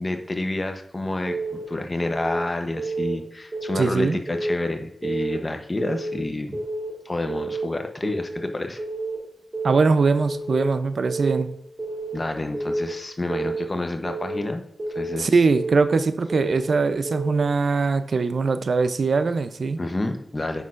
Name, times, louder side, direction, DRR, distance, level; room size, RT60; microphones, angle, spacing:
voice 1, 0.0-6.6 7.0-8.8 12.1-14.6 14.9-15.3 19.8-20.6, left 2 dB, 30° left, 6 dB, 0.8 m, -29 dB
Keyboard (musical) / Alarm, 1.3-1.6 2.0-2.4 2.8-3.1 3.5-3.9 4.3-4.7 5.0-5.4 5.8-6.2 6.5-6.9 7.3-7.7 8.0-8.4 8.8-9.2 9.5-9.9 10.3-10.7 11.0-11.4 11.8-12.2 12.5-12.9 13.3-13.7 14.0-14.4 14.8-15.2 15.5-15.9 16.3-16.7 17.0-17.4, right 2 dB, 40° right, 3.1 m, -29 dB
voice 2, 3.8-4.2 9.6-11.5 15.2-19.8, right 4 dB, 70° right, 11 dB, 0.5 m, -21 dB
8.9 x 6.2 x 2.5 m, 0.74 s
wide cardioid pair, 75°, 0 cm